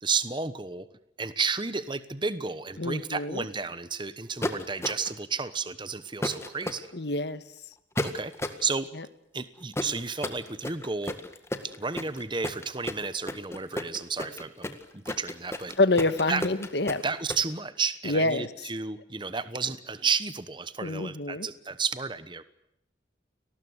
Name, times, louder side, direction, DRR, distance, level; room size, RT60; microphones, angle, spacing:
voice 1, 0.0-0.9 1.2-6.9 8.0-8.3 8.6-8.9 9.3-11.1 11.6-15.7 16.3-16.4 17.0-22.4, right 5 dB, 25° right, 13 dB, 1.1 m, -32 dB
voice 2, 2.8-3.4 6.9-7.4 8.9-9.0 15.8-17.0 18.0-18.5 20.8-21.5, left 2 dB, 60° left, 12 dB, 1.5 m, -26 dB
sound 1, 4.4-5.2 6.2-6.8 8.0-8.6 9.7-17.4, left 1 dB, 15° left, 1.8 m, -33 dB
29.5 x 19.5 x 8.1 m, 0.81 s
head